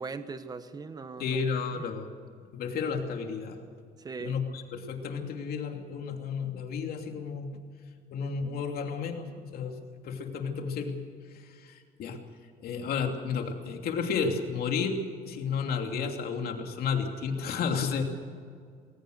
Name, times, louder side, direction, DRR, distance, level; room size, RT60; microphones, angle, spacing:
voice 1, 0.0-1.9 4.0-4.4, right 4 dB, 25° right, 11 dB, 1.2 m, -40 dB
voice 2, 1.2-2.1 2.5-3.6 4.2-7.5 8.1-9.8 10.0-11.0 11.3-12.2 12.6-15.0 15.2-18.0, left 5 dB, 65° left, 4 dB, 2.8 m, -32 dB
22.0 x 18.5 x 6.5 m, 2.2 s
cardioid pair, 110°, 17 cm